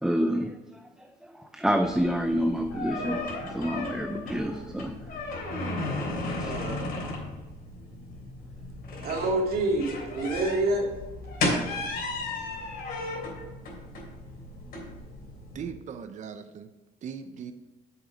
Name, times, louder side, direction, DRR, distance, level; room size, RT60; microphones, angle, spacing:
voice 1, 0.0-5.0 6.4-6.6, equal, 5° right, 5 dB, 0.6 m, -29 dB
sound 1, 1.8-15.7, left 2 dB, 60° left, 3.2 m, -35 dB
voice 2, 3.0-3.6 6.4-6.8 9.0-10.8, right 2 dB, 65° right, 0 dB, 2.3 m, -28 dB
voice 3, 15.5-16.7 17.0-17.5, right 7 dB, 45° right, 8 dB, 0.6 m, -39 dB
7.3 x 6.9 x 5.1 m, 1.2 s
cardioid pair, 110°, 17 cm